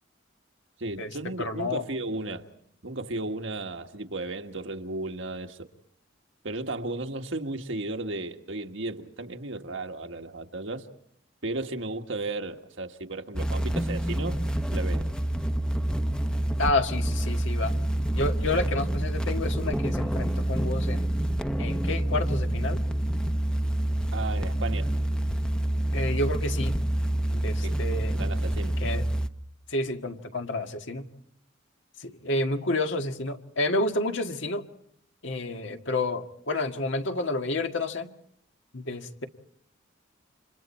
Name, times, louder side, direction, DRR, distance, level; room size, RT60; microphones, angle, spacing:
voice 1, 0.8-2.5 2.8-5.7 6.4-10.9 11.4-14.4 14.7-15.0 18.5-18.6 24.1-24.9 27.6-27.8 28.1-28.7, right 2 dB, 70° right, 1.6 m, -34 dB
voice 2, 1.4-1.8 16.6-17.7 18.1-21.1 21.6-22.8 25.9-26.8 27.3-28.2 28.8-29.0 29.7-31.0 32.0-34.6 35.2-38.1 38.7-39.3, left 2 dB, 70° left, 1.7 m, -29 dB
sound 1, 13.4-29.3, right 1 dB, 5° left, 0.8 m, -27 dB
29.5 x 26.5 x 4.4 m
head